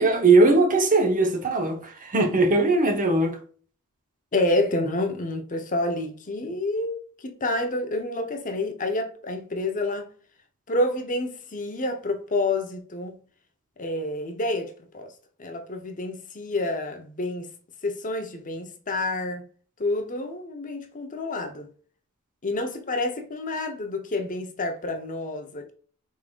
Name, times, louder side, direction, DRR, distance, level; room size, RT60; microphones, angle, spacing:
voice 1, 0.0-3.4, right 3 dB, 35° right, 0.9 m, -20 dB
voice 2, 4.3-10.1 10.7-13.2 13.8-15.1 15.4-17.5 17.8-19.5 19.8-21.7 22.4-25.7, left 2 dB, 35° left, 0.8 m, -28 dB
5.4 x 3.7 x 2.4 m
head